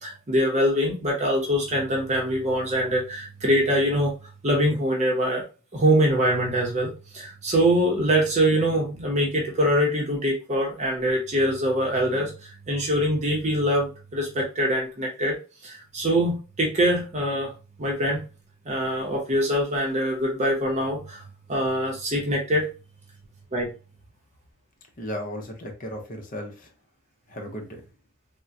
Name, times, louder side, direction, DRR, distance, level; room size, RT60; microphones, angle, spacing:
voice 1, 0.0-4.1 4.4-5.4 5.7-12.3 12.7-15.4 15.6-17.5 17.8-18.2 18.7-22.7 23.5-23.7, equal, 35° right, -1 dB, 0.7 m, -24 dB
voice 2, 25.0-26.7 27.3-27.8, equal, 40° left, 2 dB, 0.7 m, -35 dB
3.6 x 2.1 x 2.6 m, 0.33 s
head